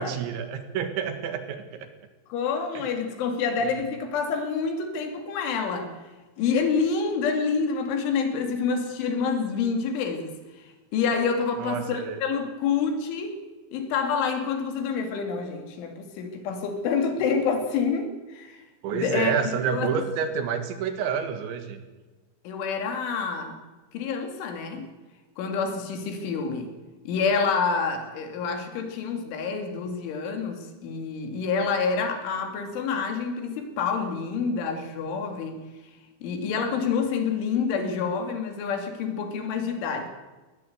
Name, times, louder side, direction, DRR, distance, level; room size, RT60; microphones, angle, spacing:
voice 1, 0.0-1.9 2.8-2.9 11.6-12.2 18.8-21.8, right 7 dB, 75° right, 8 dB, 4.1 m, -29 dB
voice 2, 2.3-5.9 6.4-10.4 10.9-13.4 13.7-18.6 18.9-19.3 19.7-19.9 22.4-23.6 23.9-24.9 25.4-26.7 27.1-35.6 36.2-40.1, left 5 dB, 80° left, 5 dB, 4.9 m, -27 dB
20.0 x 19.0 x 8.0 m, 1.2 s
omnidirectional pair, 5.5 m